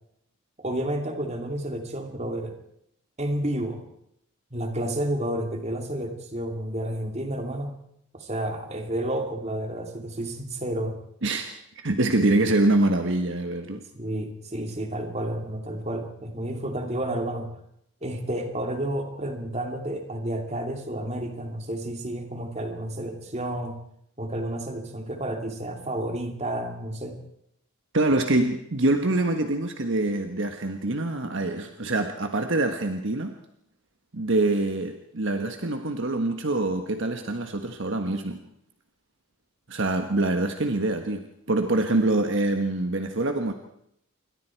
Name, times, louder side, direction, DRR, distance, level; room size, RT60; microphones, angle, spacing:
voice 1, 0.6-2.5 3.2-3.8 4.5-7.7 8.1-11.0 13.9-17.5 18.0-23.8 24.2-27.2, right 1 dB, 30° right, 4 dB, 2.7 m, -31 dB
voice 2, 11.8-13.8 27.9-33.4 34.1-38.4 39.7-43.5, right 2 dB, 55° right, 6 dB, 1.3 m, -25 dB
27.5 x 23.0 x 4.6 m, 0.75 s
head